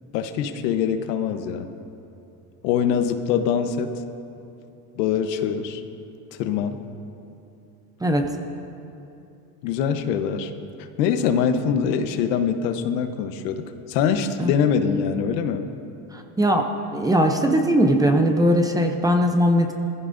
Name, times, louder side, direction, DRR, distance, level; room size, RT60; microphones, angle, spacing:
voice 1, 0.1-1.7 2.6-3.9 5.0-5.8 6.4-6.8 9.6-10.5 11.0-15.7, left 7 dB, 85° left, 8 dB, 1.1 m, -23 dB
voice 2, 16.1-16.7 16.9-19.7, equal, 10° right, 3 dB, 0.6 m, -19 dB
21.5 x 15.0 x 2.6 m, 2.8 s
cardioid pair, 145°, 47 cm